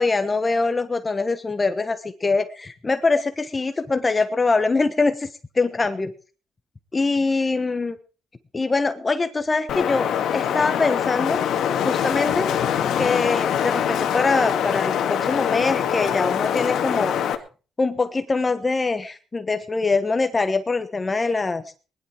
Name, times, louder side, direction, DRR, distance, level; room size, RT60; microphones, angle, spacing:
voice 1, 0.0-5.3 5.5-6.1 6.9-8.0 8.5-11.4 11.8-12.5 13.0-17.1 17.8-21.6, left 3 dB, 25° left, 10 dB, 1.3 m, -23 dB
Wind, 9.7-17.3, left 9 dB, 75° left, 2.1 m, -23 dB
20.5 x 11.5 x 4.7 m, 0.36 s
cardioid pair, 90°, 0 cm